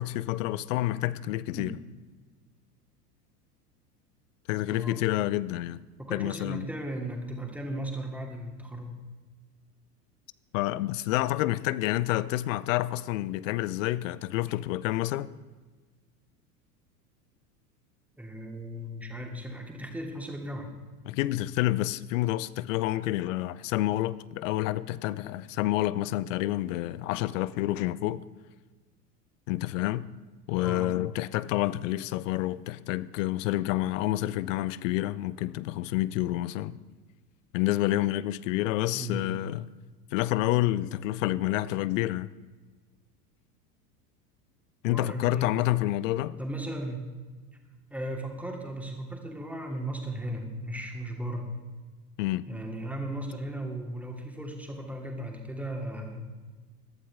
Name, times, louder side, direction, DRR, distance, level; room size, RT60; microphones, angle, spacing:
voice 1, 0.0-1.7 4.5-5.8 6.1-6.7 10.5-15.3 21.1-28.2 29.5-30.1 30.5-36.8 37.5-39.7 40.1-42.3 44.8-46.4 52.2-52.5, left 15 dB, 55° left, 0.6 m, -28 dB
voice 2, 4.7-5.0 6.0-8.9 18.2-20.7 30.5-30.9 38.9-39.3 44.8-45.7 46.4-47.1 47.9-51.5 52.5-56.2, right 1 dB, 5° right, 2.4 m, -36 dB
17.0 x 11.5 x 3.6 m
hypercardioid pair, 85°, 47 cm